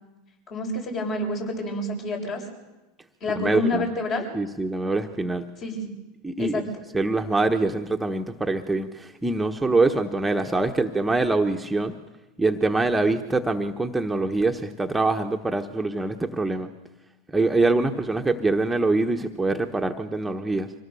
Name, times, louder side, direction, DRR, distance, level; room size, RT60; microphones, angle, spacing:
voice 1, 0.5-2.4 3.2-4.3 5.6-5.9 6.4-6.6, left 2 dB, 45° left, 1 dB, 7.4 m, -28 dB
voice 2, 3.3-3.9 4.3-5.5 6.2-6.7 6.9-12.0 12.4-16.7 17.3-20.7, right 2 dB, 10° right, 3 dB, 1.3 m, -24 dB
25.5 x 18.0 x 7.1 m, 1.1 s
hypercardioid pair, 95°, 0 cm